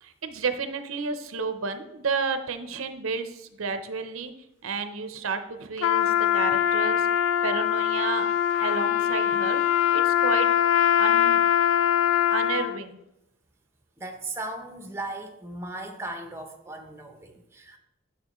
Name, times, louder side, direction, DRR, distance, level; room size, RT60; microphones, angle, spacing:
voice 1, 0.0-4.3 4.6-7.1 7.4-8.3 8.6-9.6 9.9-10.5 11.0-11.4 12.3-13.0, right 5 dB, 80° right, 9 dB, 0.6 m, -31 dB
Trumpet, 5.8-12.8, left 10 dB, 85° left, 0.3 m, -22 dB
voice 2, 14.0-17.8, right 2 dB, 10° right, 4 dB, 0.6 m, -37 dB
9.6 x 5.9 x 3.0 m, 0.85 s
head